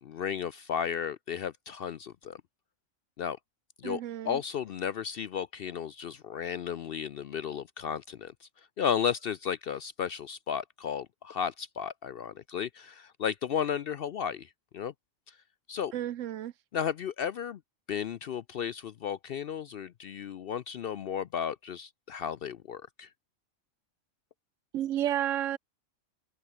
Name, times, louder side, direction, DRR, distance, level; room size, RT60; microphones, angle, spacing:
voice 1, 0.0-2.4 3.2-3.4 3.8-8.5 8.8-14.9 15.3-15.4 15.7-15.9 16.7-17.6 17.9-23.1, left 8 dB, 60° left, 0.6 m, -34 dB
voice 2, 3.8-4.4 15.9-16.5 24.7-25.6, right 11 dB, 75° right, 1.0 m, -31 dB
omnidirectional pair, 1.4 m